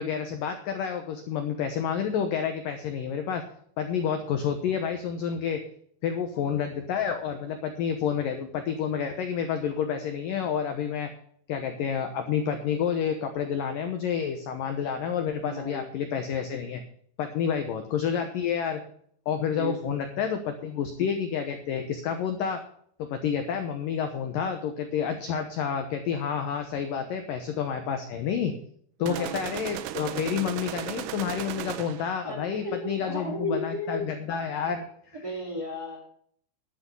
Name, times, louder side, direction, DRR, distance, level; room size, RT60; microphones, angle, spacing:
voice 1, 0.0-3.4 3.8-5.6 6.0-11.1 11.5-16.8 17.2-18.8 19.3-22.6 23.0-28.5 29.0-34.9, left 7 dB, 80° left, 6 dB, 2.0 m, -29 dB
voice 2, 15.4-15.8 19.6-20.0 29.0-29.4 32.2-34.1 35.2-36.1, left 1 dB, 25° right, 0 dB, 2.2 m, -34 dB
sound 1, 29.1-32.2, right 13 dB, 85° right, 3.1 m, -36 dB
12.0 x 8.4 x 5.4 m, 0.62 s
omnidirectional pair, 5.3 m